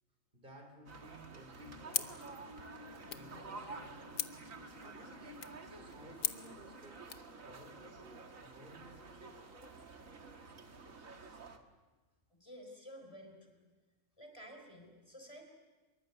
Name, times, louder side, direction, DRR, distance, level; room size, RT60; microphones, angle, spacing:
voice 1, 0.3-2.6 3.1-4.2 4.8-7.1 7.4-9.4, equal, 40° right, 4 dB, 3.9 m, -57 dB
sound 1, 0.9-11.6, right 4 dB, 80° right, 2.2 m, -51 dB
sound 2, 1.4-9.2 9.6-9.7, left 4 dB, 45° left, 2.0 m, -58 dB
sound 3, 1.9-7.3, left 8 dB, 80° left, 1.4 m, -43 dB
voice 2, 12.3-13.6 14.2-15.5, equal, 20° left, 3 dB, 4.4 m, -52 dB
24.5 x 23.0 x 8.1 m, 1.3 s
omnidirectional pair, 1.4 m